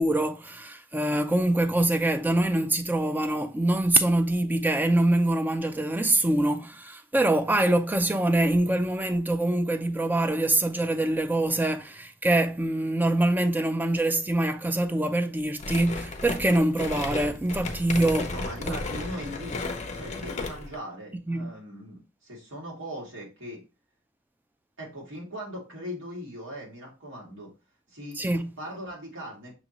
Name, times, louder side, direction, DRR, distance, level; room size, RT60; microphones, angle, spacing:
voice 1, 0.0-18.3 18.6-18.8 21.3-21.5 28.2-28.5, right 1 dB, 10° right, 0.3 m, -24 dB
sound 1, 15.6-20.8, left 3 dB, 35° left, 0.6 m, -34 dB
voice 2, 18.3-19.6 19.9-23.6 24.8-27.5 27.9-28.2 28.6-29.5, equal, 85° right, 2.0 m, -39 dB
6.1 x 2.6 x 2.9 m
head